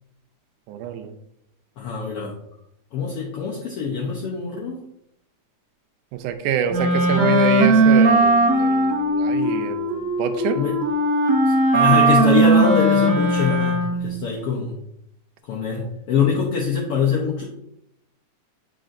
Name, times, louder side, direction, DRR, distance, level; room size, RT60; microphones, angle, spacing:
voice 1, 0.7-1.1 6.1-10.6 11.8-12.0 15.7-15.9, right 8 dB, 90° right, 8 dB, 2.2 m, -26 dB
voice 2, 1.8-2.3 2.9-4.8 8.5-8.7 10.5-10.8 11.4-14.7 15.5-17.4, left 6 dB, 80° left, -2 dB, 1.3 m, -24 dB
Wind instrument woodwind instrument, 6.7-14.1, right 2 dB, 55° right, 1.0 m, -18 dB
7.8 x 4.9 x 2.5 m, 0.76 s
omnidirectional pair, 3.6 m